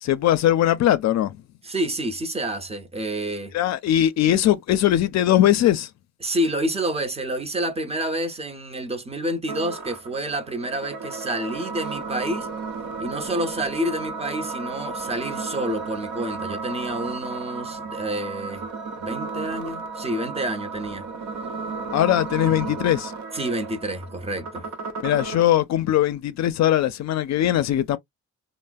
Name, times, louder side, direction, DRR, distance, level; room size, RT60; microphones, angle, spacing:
voice 1, 0.0-1.4 3.5-5.9 21.9-23.1 25.0-28.0, left 12 dB, 65° left, 0.5 m, -20 dB
voice 2, 1.6-3.5 6.2-12.5 13.0-18.6 19.0-21.1 22.4-22.8 23.3-24.7, right 1 dB, 20° right, 0.7 m, -28 dB
sound 1, 9.5-25.5, right 4 dB, 70° right, 0.8 m, -33 dB
3.1 x 2.0 x 2.2 m
cardioid pair, 90°, 30 cm